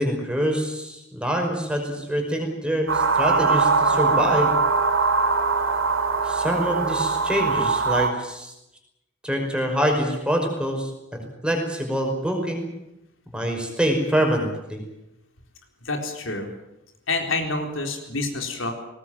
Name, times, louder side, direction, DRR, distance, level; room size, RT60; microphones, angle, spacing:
voice 1, 0.0-4.5 6.2-8.5 9.2-12.7 13.3-14.8, equal, 5° right, 2 dB, 5.4 m, -25 dB
sound 1, 2.9-8.1, right 4 dB, 90° right, 2.9 m, -21 dB
voice 2, 15.8-16.5 17.1-18.7, left 3 dB, 80° left, 3 dB, 4.2 m, -27 dB
21.0 x 19.0 x 9.2 m, 0.87 s
head